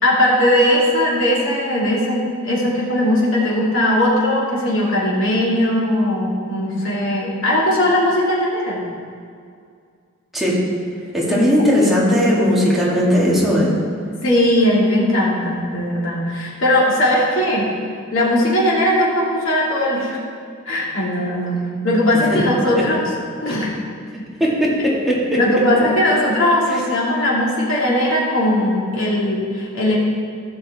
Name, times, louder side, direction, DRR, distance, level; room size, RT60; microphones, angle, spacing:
voice 1, 0.0-8.8 11.3-11.5 11.8-12.0 14.2-17.7 18.1-20.2 20.7-23.0 23.4-23.7 25.4-30.0, left 1 dB, 75° left, -5 dB, 2.8 m, -19 dB
voice 2, 11.1-13.7 22.3-22.4 23.4-23.6 24.4-25.4 26.7-26.8, equal, ahead, -7 dB, 2.2 m, -17 dB
15.5 x 6.4 x 4.3 m, 2.2 s
head